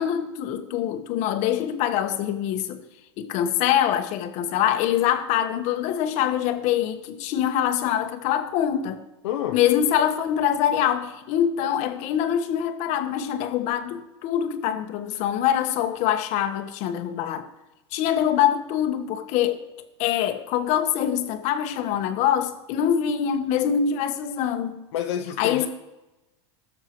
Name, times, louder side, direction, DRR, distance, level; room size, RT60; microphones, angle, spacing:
voice 1, 0.0-2.8 3.2-9.0 9.5-17.5 17.9-19.6 20.0-24.9 25.4-25.7, left 10 dB, 55° left, 1.3 m, -24 dB
voice 2, 9.2-9.6 24.9-25.7, left 10 dB, 80° left, 0.8 m, -28 dB
18.0 x 6.8 x 3.1 m
supercardioid pair, 125°, 14 cm